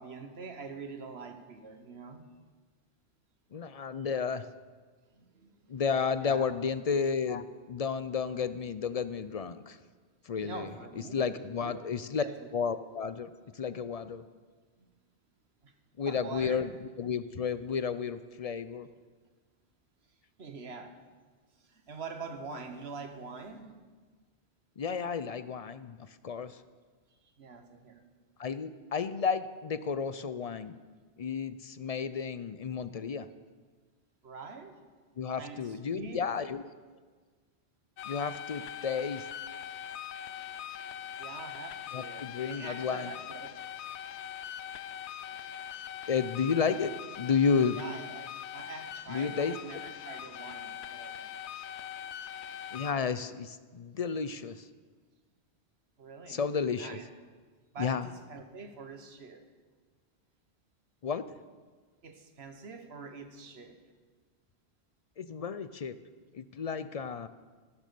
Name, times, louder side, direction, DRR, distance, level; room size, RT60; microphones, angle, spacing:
voice 1, 0.0-2.3 5.1-5.7 6.2-6.5 10.4-11.8 12.2-12.5 14.8-14.9 15.6-15.7 16.1-16.6 20.4-21.0 21.6-23.7 27.2-28.1 34.2-34.8 35.4-36.2 41.2-43.7 47.7-51.3 56.0-56.4 56.8-57.0 57.7-59.5 62.0-63.8, right 4 dB, 70° right, 7 dB, 1.5 m, -45 dB
voice 2, 3.5-4.4 5.7-9.8 10.2-10.7 11.1-12.2 12.5-13.3 13.5-14.2 16.0-16.7 17.0-18.9 24.8-26.0 26.2-26.6 28.4-30.8 31.2-33.3 35.2-36.6 38.1-39.2 41.9-43.1 46.1-46.9 47.2-47.8 49.1-49.5 52.7-54.7 56.3-56.9 57.8-58.1 61.0-61.2 65.2-66.0 66.3-67.3, left 6 dB, 45° left, 13 dB, 0.5 m, -32 dB
sound 1, 38.0-52.9, left 10 dB, 85° left, 0.9 m, -42 dB
14.0 x 11.5 x 6.8 m, 1.4 s
omnidirectional pair, 1.1 m